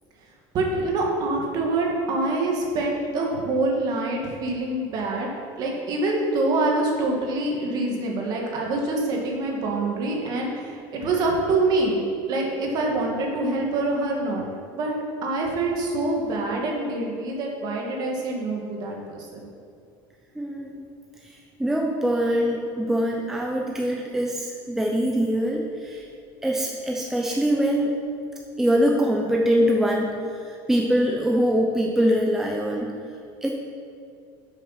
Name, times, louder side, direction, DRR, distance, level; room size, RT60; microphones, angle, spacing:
voice 1, 0.5-5.3 5.6-12.0 12.3-14.5 14.7-14.9 15.2-19.5, right 2 dB, 40° right, 0 dB, 1.7 m, -25 dB
voice 2, 20.3-20.8 21.2-26.1 26.4-27.9 28.6-32.9 33.4-33.5, equal, 5° right, -1 dB, 0.6 m, -23 dB
8.1 x 6.3 x 5.8 m, 2.4 s
cardioid pair, 155°, 10 cm